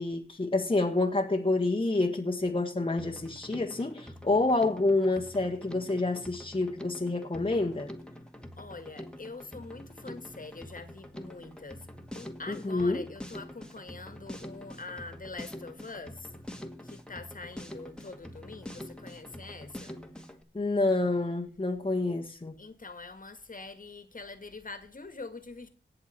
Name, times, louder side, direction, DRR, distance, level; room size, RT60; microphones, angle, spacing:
voice 1, 0.0-7.9 12.5-13.0 20.5-22.5, left 2 dB, 25° left, 1.5 m, -28 dB
Drum kit, 3.0-20.4, left 1 dB, 5° left, 2.0 m, -45 dB
voice 2, 8.6-11.9 12.1-16.3 16.8-20.0 22.6-25.7, left 3 dB, 45° left, 1.9 m, -44 dB
18.0 x 6.8 x 4.4 m
cardioid pair, 60°, 20 cm